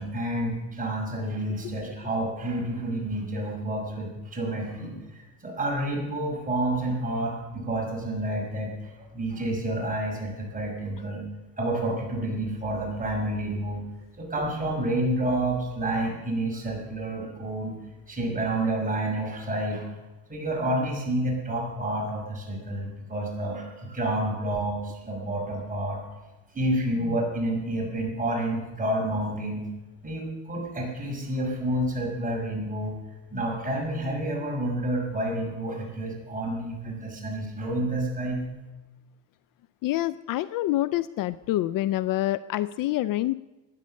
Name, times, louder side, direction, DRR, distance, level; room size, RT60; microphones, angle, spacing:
voice 1, 0.0-11.2 11.6-13.8 14.2-17.7 18.1-19.9 20.3-26.0 26.5-29.7 30.0-33.0 33.3-38.4, right 1 dB, 20° right, -1 dB, 5.7 m, -29 dB
voice 2, 39.8-43.3, left 15 dB, 55° left, 17 dB, 0.4 m, -27 dB
15.0 x 10.5 x 6.4 m, 1.1 s
cardioid pair, 115°, 40 cm